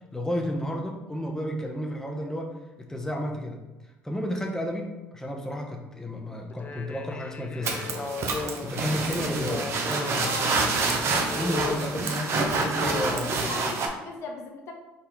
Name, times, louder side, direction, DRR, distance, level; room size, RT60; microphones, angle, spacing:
voice 1, 0.1-3.6 4.0-8.1 8.6-10.8 11.4-12.2 12.5-13.4, equal, 10° left, 1 dB, 0.8 m, -32 dB
sound 1, 6.5-13.2, left 4 dB, 30° left, 0.5 m, -36 dB
sound 2, 7.6-13.9, right 3 dB, 55° right, 0.7 m, -27 dB
voice 2, 10.2-10.6 13.1-14.7, left 3 dB, 60° left, 2 dB, 0.7 m, -38 dB
4.1 x 2.6 x 4.5 m, 1.1 s
supercardioid pair, 75°, 5 cm